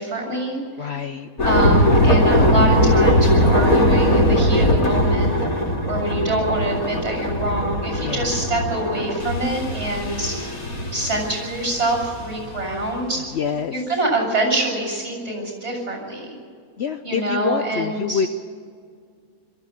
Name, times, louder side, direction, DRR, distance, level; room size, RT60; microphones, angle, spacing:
voice 1, 0.0-1.0 1.4-5.3 5.9-10.4 10.9-13.2 13.7-16.4 17.0-18.2, right 2 dB, 50° right, 1 dB, 7.3 m, -25 dB
voice 2, 0.8-1.3 8.0-8.3 13.3-13.8 16.8-18.3, left 6 dB, 55° left, 7 dB, 0.9 m, -26 dB
sound 1, 1.4-12.9, equal, 85° left, 3.4 m, -20 dB
22.5 x 14.0 x 8.6 m, 2.1 s
omnidirectional pair, 1.5 m